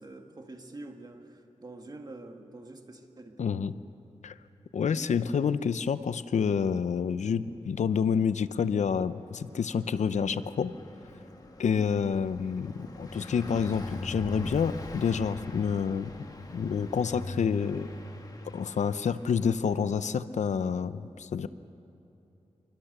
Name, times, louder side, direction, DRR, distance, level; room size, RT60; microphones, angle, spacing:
voice 1, 0.0-3.5, right 2 dB, 35° right, 4 dB, 2.0 m, -46 dB
voice 2, 3.4-3.7 4.2-4.3 4.7-10.7 11.6-16.1 16.5-17.9 18.5-21.5, left 6 dB, 85° left, 13 dB, 0.7 m, -28 dB
Car passing by, 9.0-20.0, left 2 dB, 30° left, 1.8 m, -42 dB
27.0 x 24.0 x 6.7 m, 2.9 s
wide cardioid pair, 125°, 12 cm